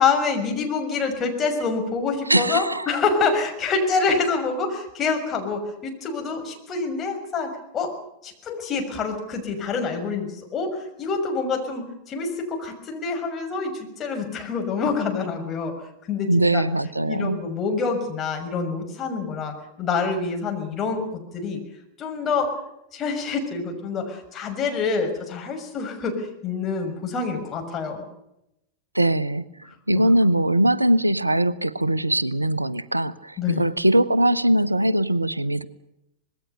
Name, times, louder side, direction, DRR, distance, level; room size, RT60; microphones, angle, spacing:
voice 1, 0.0-7.9 8.2-15.7 16.1-16.6 17.1-21.1 21.3-21.6 22.0-22.5 22.9-28.0 33.4-33.6, left 4 dB, 25° left, 3 dB, 6.3 m, -26 dB
voice 2, 2.3-3.0 16.3-17.4 28.9-35.6, right 1 dB, 85° right, 19 dB, 0.8 m, -21 dB
26.0 x 20.5 x 6.8 m, 0.84 s
figure-of-eight pair, 90°, 0 cm